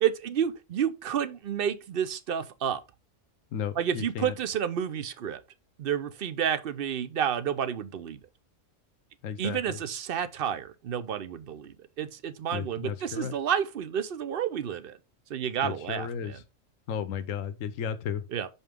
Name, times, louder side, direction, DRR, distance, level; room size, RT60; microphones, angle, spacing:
voice 1, 0.0-2.8 3.7-5.4 5.8-8.2 9.4-15.0 15.3-16.4 18.3-18.5, right 9 dB, 55° right, 0.7 m, -30 dB
voice 2, 3.5-4.3 9.2-9.8 12.5-13.3 15.6-16.3 16.9-18.2, left 7 dB, 75° left, 1.1 m, -34 dB
5.8 x 5.5 x 3.6 m
omnidirectional pair, 1.4 m